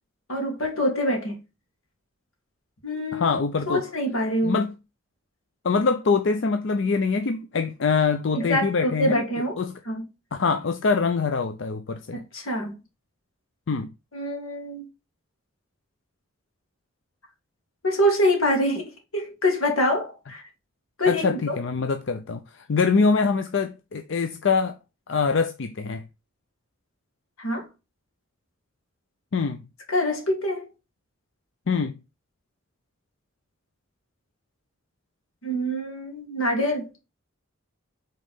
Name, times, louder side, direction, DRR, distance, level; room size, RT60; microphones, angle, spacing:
voice 1, 0.3-1.3 2.8-3.3 3.7-4.6 8.3-9.6 9.9-10.1 12.1-12.8 14.1-14.8 17.8-18.9 19.1-20.4 21.0-21.6 27.4-27.7 29.9-30.7 35.4-36.9, equal, 85° left, 2.2 m, -25 dB
voice 2, 3.1-3.8 4.4-4.7 5.6-9.2 9.6-9.7 10.3-12.2 13.7-13.9 21.1-24.8 25.1-26.0 29.3-29.6 31.7-32.0, left 4 dB, 60° left, 0.5 m, -24 dB
5.3 x 3.9 x 5.4 m
head